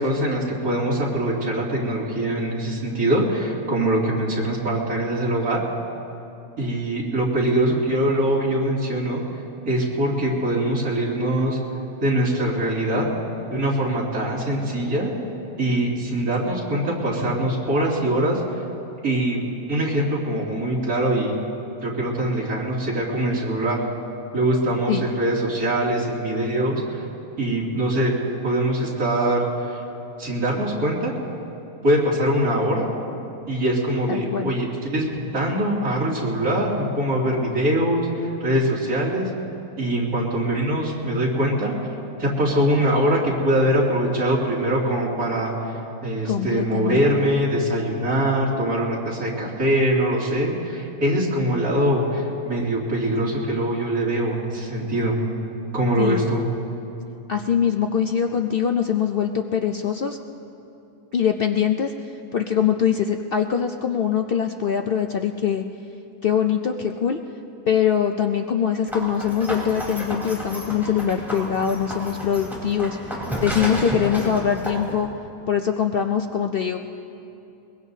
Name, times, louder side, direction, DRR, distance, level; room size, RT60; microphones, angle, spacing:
voice 1, 0.0-5.6 6.6-9.2 9.6-11.6 12.0-13.0 13.5-15.1 15.6-18.4 19.0-19.4 19.7-21.4 21.8-23.8 24.3-27.0 27.4-28.1 28.4-29.8 30.2-31.1 31.8-32.9 33.5-39.3 39.8-41.7 42.2-45.5 46.0-55.1 55.7-56.5, right 1 dB, 85° right, -5 dB, 3.1 m, -23 dB
voice 2, 34.1-34.5 46.2-47.0 56.0-56.3 57.3-60.2 61.1-61.9 62.3-65.6 66.2-67.2 67.7-73.0 73.4-75.1 75.5-76.8, left 8 dB, 60° left, 5 dB, 0.6 m, -23 dB
sound 1, 68.9-74.9, equal, ahead, 3.9 m, -31 dB
22.0 x 21.5 x 2.8 m, 2.8 s
omnidirectional pair, 1.5 m